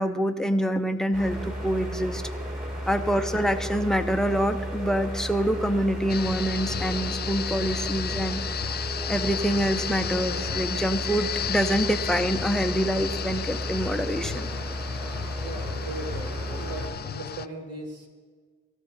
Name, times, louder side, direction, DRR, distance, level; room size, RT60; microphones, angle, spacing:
voice 1, 0.0-2.2 2.9-8.4 9.1-14.5, equal, ahead, 6 dB, 0.9 m, -26 dB
sound 1, 1.1-16.9, equal, 30° right, 5.3 m, -34 dB
sound 2, 6.1-17.5, left 9 dB, 35° left, 0.4 m, -33 dB
voice 2, 15.4-18.1, right 2 dB, 55° right, 1 dB, 3.0 m, -38 dB
17.5 x 14.0 x 4.0 m, 1.5 s
cardioid pair, 90°, 30 cm